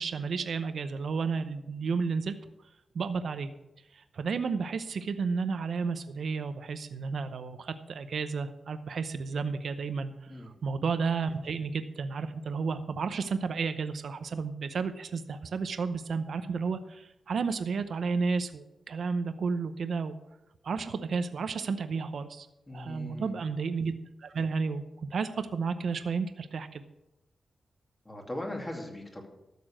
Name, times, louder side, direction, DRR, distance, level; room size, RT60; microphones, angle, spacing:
voice 1, 0.0-2.3 2.9-3.5 3.9-20.1 20.6-22.5 22.7-23.9 24.2-26.8, right 5 dB, 75° right, 10 dB, 0.7 m, -32 dB
voice 2, 22.7-23.4 28.1-29.3, left 1 dB, 20° left, 1 dB, 2.6 m, -39 dB
13.0 x 6.9 x 6.3 m, 0.92 s
wide cardioid pair, 95°, 0 cm